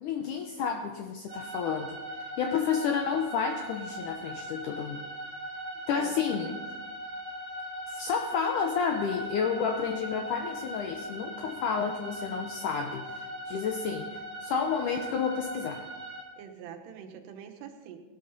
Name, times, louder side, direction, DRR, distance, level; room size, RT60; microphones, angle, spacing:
voice 1, 0.0-1.9 2.4-5.0 5.9-6.6 7.9-15.8, left 6 dB, 80° left, 4 dB, 1.8 m, -30 dB
sound 1, 1.3-16.2, right 1 dB, 30° right, 3.8 m, -40 dB
voice 2, 5.9-6.6 16.4-18.0, right 7 dB, 90° right, 5 dB, 3.3 m, -45 dB
17.0 x 11.5 x 4.0 m, 1.2 s
omnidirectional pair, 4.6 m